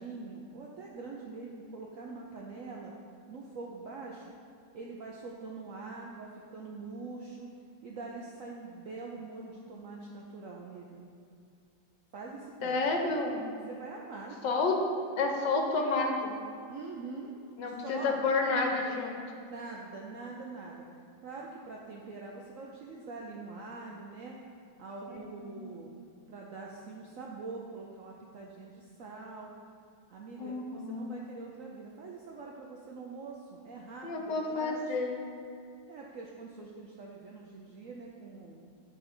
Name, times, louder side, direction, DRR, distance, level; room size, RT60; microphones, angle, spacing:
voice 1, 0.0-2.9 3.3-4.3 4.7-7.5 7.8-11.0 12.1-12.9 13.7-14.4 16.7-17.3 17.6-18.8 19.4-20.9 21.2-24.4 24.8-25.9 26.3-29.5 30.1-34.9 35.9-38.6, right 3 dB, 70° right, -2 dB, 0.7 m, -44 dB
voice 2, 12.6-13.5 14.4-14.8 15.2-16.3 17.6-19.2 25.1-25.6 30.4-31.1 34.0-35.2, left 3 dB, 75° left, 2 dB, 1.4 m, -30 dB
10.0 x 3.9 x 4.3 m, 2.4 s
omnidirectional pair, 2.0 m